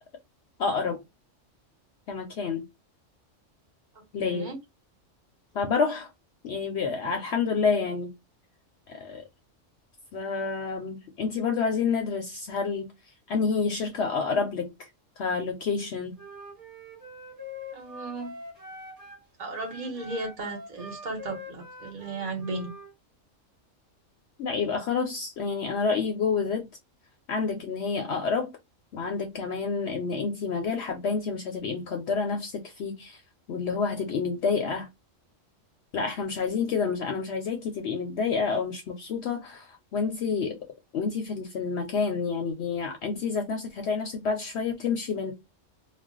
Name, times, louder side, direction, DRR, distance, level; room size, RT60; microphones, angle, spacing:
voice 1, 0.6-1.0 2.1-2.6 4.1-4.5 5.5-6.1 6.4-8.1 8.9-9.2 10.1-12.9 13.3-14.9 15.2-16.2 24.4-26.7 27.3-28.5 28.9-33.2 33.5-34.9 35.9-40.6 40.9-45.3, left 5 dB, 65° left, 0.8 m, -28 dB
voice 2, 4.2-4.6 17.7-18.3 19.4-22.7, right 3 dB, 40° right, 1.1 m, -35 dB
Wind instrument woodwind instrument, 16.1-19.2 19.5-22.9, left 2 dB, 15° right, 1.2 m, -44 dB
2.4 x 2.2 x 3.7 m
omnidirectional pair, 1.3 m